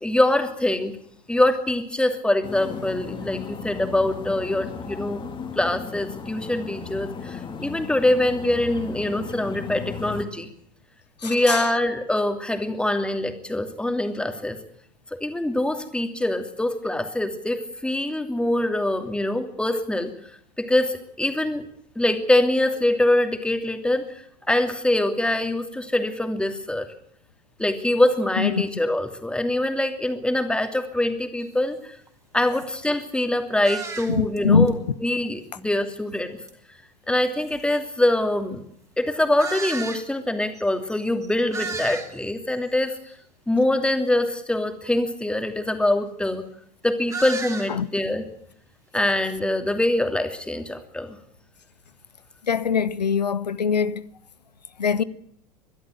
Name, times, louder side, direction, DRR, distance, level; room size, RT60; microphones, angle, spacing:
voice 1, 0.0-1.0 1.3-5.3 5.6-10.5 11.2-14.6 15.1-20.1 20.6-21.6 22.0-24.1 24.5-26.9 27.6-31.9 32.3-36.4 37.1-38.6 39.0-43.0 43.5-46.4 46.8-48.2 48.9-51.2, left 1 dB, 5° left, 2.7 m, -24 dB
sound 1, 2.4-10.2, left 5 dB, 25° left, 2.7 m, -36 dB
voice 2, 11.2-11.6 28.4-28.6 34.1-34.7 47.7-47.9 52.5-54.0 54.8-55.0, left 6 dB, 85° left, 0.9 m, -22 dB
sound 2, 31.4-31.5 32.1-32.2 32.5-32.7 33.6-34.4 34.7-34.8 36.5-36.6 37.4-37.5 39.4-40.1 40.5-40.6 40.9-41.0 41.2-42.3 42.7-43.1 47.1-47.7, right 3 dB, 15° right, 3.4 m, -33 dB
23.0 x 12.5 x 9.3 m
figure-of-eight pair, 85°, 21 cm